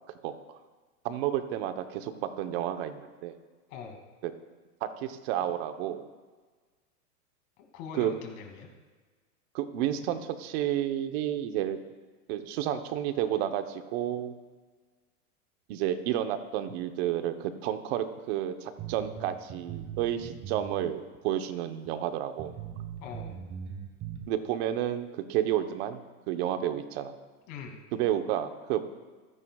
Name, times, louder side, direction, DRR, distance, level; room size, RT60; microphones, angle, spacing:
voice 1, 1.0-3.4 4.2-4.3 4.8-6.0 7.9-8.1 9.5-11.8 12.3-14.3 15.7-22.5 24.3-26.0 26.3-27.1 27.9-28.8, right 11 dB, 45° right, 8 dB, 1.1 m, -31 dB
voice 2, 7.6-8.7 23.0-23.3 27.5-27.8, left 6 dB, 40° left, 3 dB, 2.5 m, -42 dB
sound 1, 18.8-20.9 21.1-21.2 21.8-21.9 22.4-24.3, right 8 dB, 25° right, 1.4 m, -40 dB
26.0 x 10.0 x 2.4 m, 1.4 s
supercardioid pair, 140°, 44 cm